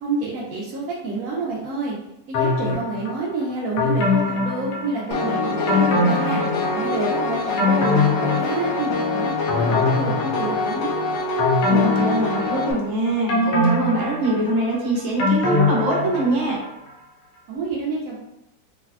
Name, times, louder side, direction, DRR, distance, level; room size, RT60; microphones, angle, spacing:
voice 1, 0.0-2.0 2.3-6.4 6.7-7.9 8.2-10.9 17.5-18.2, right 3 dB, 75° right, -4 dB, 0.8 m, -28 dB
sound 1, 2.3-3.2 3.8-5.2 5.7-7.0 7.3-9.0 9.5-10.8 11.4-12.8 13.3-16.5 16.9-17.0, left 2 dB, 70° left, 1.2 m, -22 dB
Piano, 5.1-12.7, left 3 dB, 90° left, 1.3 m, -25 dB
voice 2, 11.7-16.6, right 2 dB, 45° right, -4 dB, 1.0 m, -23 dB
4.0 x 2.2 x 2.3 m, 0.91 s
omnidirectional pair, 1.9 m